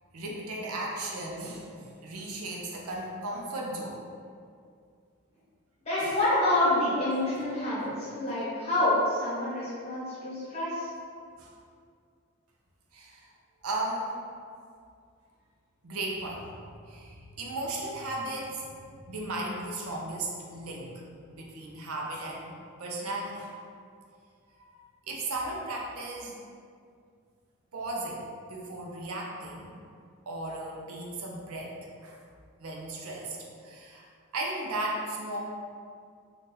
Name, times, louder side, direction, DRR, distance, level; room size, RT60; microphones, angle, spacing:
voice 1, 0.1-4.0 6.0-6.2 11.4-11.5 12.9-13.3 13.6-14.2 15.8-16.5 16.9-20.9 21.3-23.6 24.6-26.4 27.7-28.2 28.5-29.7 30.3-31.8 32.0-32.2 32.6-33.4 33.6-34.1 34.3-35.4, right 2 dB, 80° right, -2 dB, 0.5 m, -36 dB
voice 2, 5.8-10.9, left 1 dB, 30° left, -10 dB, 1.1 m, -27 dB
2.7 x 2.4 x 3.8 m, 2.3 s
head